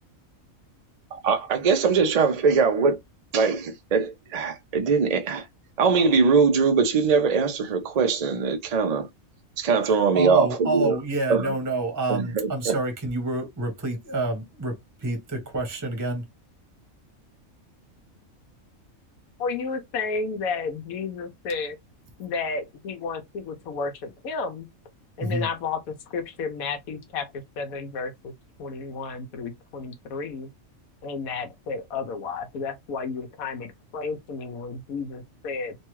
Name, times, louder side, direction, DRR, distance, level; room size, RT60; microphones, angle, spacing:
voice 1, 1.1-3.0 3.3-5.5 5.8-9.1 9.6-11.0 11.3-11.5 12.1-12.8, right 5 dB, 60° right, 0.4 m, -22 dB
voice 2, 10.1-16.2 25.2-25.5, right 2 dB, 15° right, 0.7 m, -28 dB
voice 3, 19.4-21.8 22.2-24.7 25.2-28.3 28.6-30.5 31.0-35.8, left 4 dB, 85° left, 1.2 m, -32 dB
3.1 x 2.3 x 3.0 m
omnidirectional pair, 1.4 m